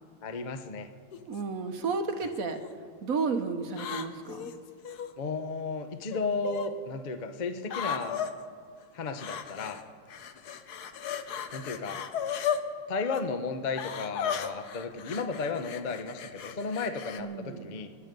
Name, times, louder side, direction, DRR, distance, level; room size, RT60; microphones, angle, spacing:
voice 1, 0.2-0.9 5.2-8.2 8.9-9.8 11.5-12.0 12.9-17.9, left 4 dB, 75° left, 8 dB, 0.4 m, -34 dB
sound 1, 1.1-1.4 2.2-2.7 3.7-5.1 6.1-6.7 7.7-8.3 9.2-9.8 10.1-12.6 13.0-13.2 13.8-17.2, left 8 dB, 60° left, 1.2 m, -35 dB
voice 2, 1.3-2.6 3.0-4.5 17.2-17.7, right 4 dB, 50° right, 7 dB, 1.1 m, -32 dB
28.0 x 9.8 x 5.3 m, 2.2 s
omnidirectional pair, 2.4 m